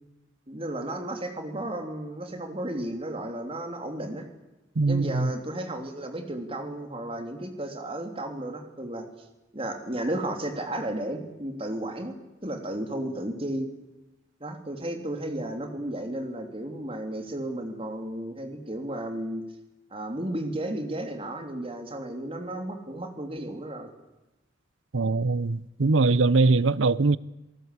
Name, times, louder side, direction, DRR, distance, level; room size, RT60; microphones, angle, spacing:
voice 1, 0.5-4.3 4.9-9.1 9.5-12.2 12.4-13.7 14.4-19.4 19.9-23.9, right 1 dB, 30° right, 3.2 m, -33 dB
voice 2, 4.8-5.3 24.9-27.2, right 3 dB, 90° right, 0.8 m, -22 dB
27.5 x 19.0 x 8.4 m
head